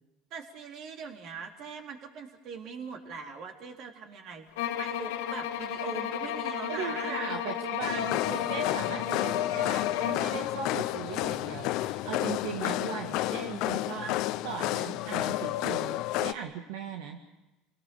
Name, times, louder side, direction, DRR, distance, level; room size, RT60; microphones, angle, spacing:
voice 1, 0.3-7.2 14.0-14.2, right 5 dB, 55° right, 3 dB, 3.6 m, -41 dB
sound 1, 4.6-10.3, left 10 dB, 85° left, 1.7 m, -33 dB
voice 2, 6.7-14.1 14.4-17.2, right 7 dB, 80° right, 3 dB, 1.9 m, -38 dB
sound 2, 7.8-16.3, left 16 dB, 65° left, 0.9 m, -31 dB
28.0 x 18.5 x 7.0 m, 1.0 s
supercardioid pair, 100°, 0 cm